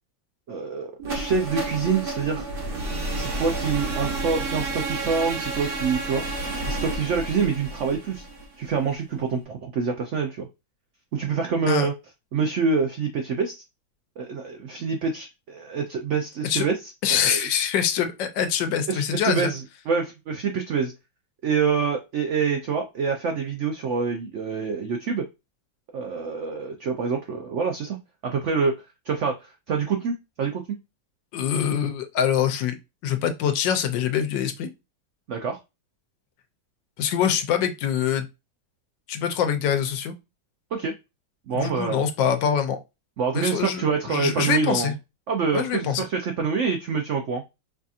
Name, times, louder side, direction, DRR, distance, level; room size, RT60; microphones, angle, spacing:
voice 1, 0.5-2.5 3.1-6.2 6.7-8.2 8.6-10.5 11.1-11.9 12.3-13.5 14.2-16.8 17.1-17.4 18.9-20.9 21.4-25.2 25.9-28.0 28.2-28.8 29.1-30.8 35.3-35.6 40.7-40.9 41.5-42.0 43.2-44.9 45.3-47.4, right 5 dB, 85° right, 3 dB, 0.6 m, -26 dB
sound 1, 1.0-8.9, right 2 dB, 40° right, 1.0 m, -30 dB
voice 2, 17.0-19.5 31.3-32.8 33.0-34.7 37.0-38.3 39.1-40.1 41.5-42.8 43.3-44.9 45.5-46.0, left 8 dB, 85° left, 8 dB, 1.3 m, -24 dB
4.8 x 2.7 x 2.4 m, 0.24 s
omnidirectional pair, 1.9 m